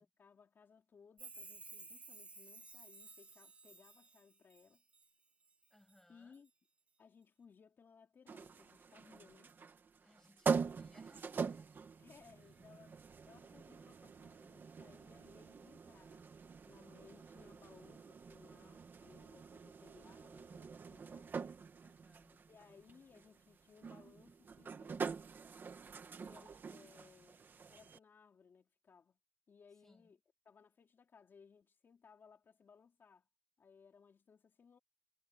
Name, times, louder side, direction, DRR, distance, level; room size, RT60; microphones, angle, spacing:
voice 1, 0.0-4.8 6.1-6.5 7.0-9.5 12.0-21.3 22.5-25.1 26.2-27.4 27.7-29.2 29.5-30.2 30.5-33.3 33.6-34.8, left 6 dB, 85° left, 3.5 m, -63 dB
Chime, 1.2-5.1 5.5-6.0 6.3-6.4, right 3 dB, 35° right, 1.2 m, -55 dB
voice 2, 5.7-6.4 10.0-11.9 12.4-12.6 12.9-13.0 21.8-22.5 29.8-30.1, left 1 dB, 10° left, 7.6 m, -68 dB
sound 1, 8.3-28.0, right 5 dB, 70° right, 1.5 m, -44 dB
wide cardioid pair, 145°, 4 cm